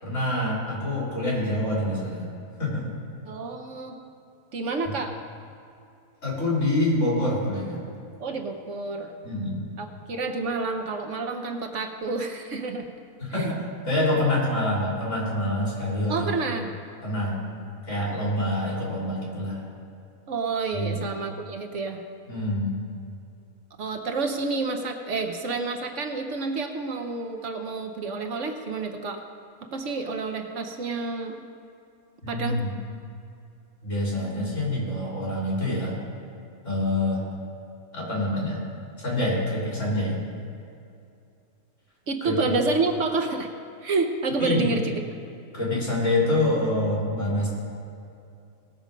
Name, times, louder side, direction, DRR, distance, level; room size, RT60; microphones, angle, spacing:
voice 1, 0.0-2.3 2.6-2.9 4.8-4.9 6.2-7.8 9.2-9.6 13.2-16.3 17.0-17.4 17.9-19.6 20.7-21.0 22.3-22.8 32.2-32.7 33.8-35.9 36.6-37.2 37.9-38.6 39.0-40.2 42.2-42.3 44.4-44.7 45.5-47.5, left 1 dB, 60° left, -5 dB, 3.9 m, -26 dB
voice 2, 3.3-4.0 4.5-5.1 8.2-9.1 9.8-12.8 13.3-13.5 16.1-16.7 20.3-22.0 23.8-29.2 29.7-31.4 32.3-32.6 42.1-43.5 43.8-45.0, right 3 dB, 60° right, 5 dB, 1.1 m, -29 dB
18.0 x 6.9 x 5.1 m, 2.6 s
omnidirectional pair, 1.5 m